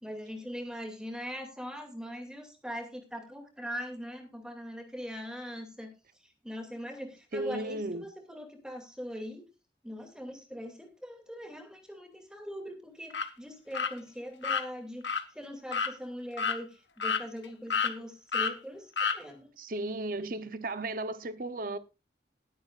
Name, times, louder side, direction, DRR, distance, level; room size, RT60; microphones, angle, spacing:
voice 1, 0.0-5.9 6.4-9.5 9.8-15.0 15.3-19.5, equal, 5° right, 2.3 m, -41 dB
voice 2, 7.3-8.1 19.6-21.8, right 2 dB, 50° right, 0.7 m, -35 dB
sound 1, 13.1-13.3 13.7-13.9 14.4-14.6 15.0-15.2 15.7-15.9 16.4-16.6 17.0-17.5 17.7-17.9 18.3-18.5 19.0-19.2, left 5 dB, 90° left, 1.3 m, -29 dB
20.0 x 8.4 x 2.4 m
head